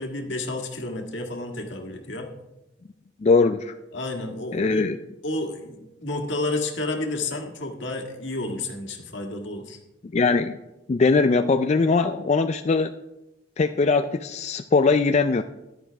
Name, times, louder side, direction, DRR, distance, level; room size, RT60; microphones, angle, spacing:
voice 1, 0.0-2.3 3.9-4.9 5.2-9.8, left 2 dB, 80° left, 3 dB, 1.7 m, -31 dB
voice 2, 3.2-3.7 4.5-5.0 10.1-10.6 10.9-12.9 13.6-15.4, left 4 dB, 35° left, 8 dB, 0.4 m, -21 dB
14.5 x 11.0 x 3.4 m, 0.95 s
head